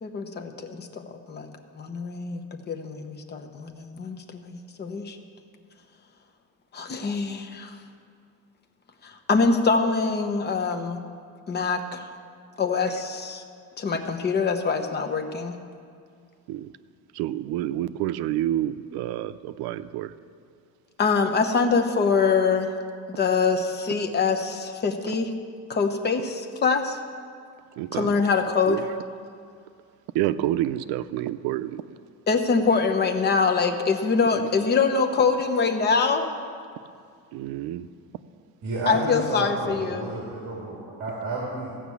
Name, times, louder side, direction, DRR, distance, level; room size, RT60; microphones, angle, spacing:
voice 1, 0.0-1.5 1.7-5.2 6.7-7.8 9.0-11.0 11.5-12.1 12.6-13.4 13.8-15.5 21.0-22.7 23.1-25.3 25.7-27.0 27.9-28.8 32.3-36.3 38.9-40.1, left 5 dB, 25° left, 5 dB, 0.9 m, -24 dB
voice 2, 17.1-20.1 27.8-28.1 28.7-28.8 30.1-31.8 37.3-37.9, right 13 dB, 80° right, 12 dB, 0.6 m, -28 dB
voice 3, 38.6-41.7, right 2 dB, 45° right, -4 dB, 2.3 m, -31 dB
15.5 x 5.9 x 8.3 m, 2.2 s
cardioid pair, 165°, 38 cm